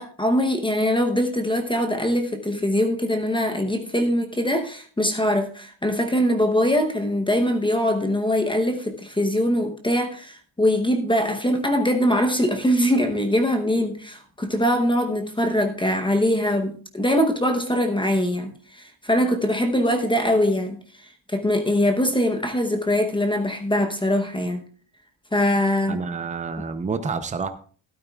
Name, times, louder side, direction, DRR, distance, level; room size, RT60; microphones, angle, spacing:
voice 1, 0.0-24.6 25.3-26.0, equal, 10° left, 5 dB, 0.8 m, -22 dB
voice 2, 25.9-27.5, right 5 dB, 15° right, 9 dB, 0.6 m, -28 dB
13.0 x 12.5 x 2.3 m, 0.42 s
cardioid pair, 170°, 48 cm